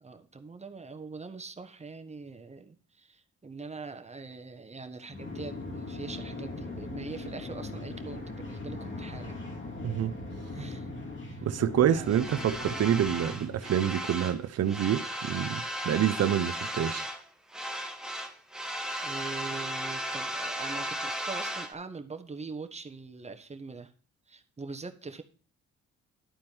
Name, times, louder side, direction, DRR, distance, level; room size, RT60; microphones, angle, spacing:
voice 1, 0.0-9.4 10.5-10.9 11.3-11.5 11.8-12.2 19.0-23.9 24.3-25.2, right 4 dB, 20° right, 1.2 m, -42 dB
sound 1, 5.1-14.0, left 2 dB, 40° left, 2.7 m, -40 dB
voice 2, 9.8-10.1 11.4-17.0, right 10 dB, 55° right, 0.7 m, -27 dB
sound 2, 12.1-14.4 14.7-17.2 17.5-21.7, equal, ahead, 1.1 m, -35 dB
11.5 x 4.4 x 6.1 m
cardioid pair, 90°, 30 cm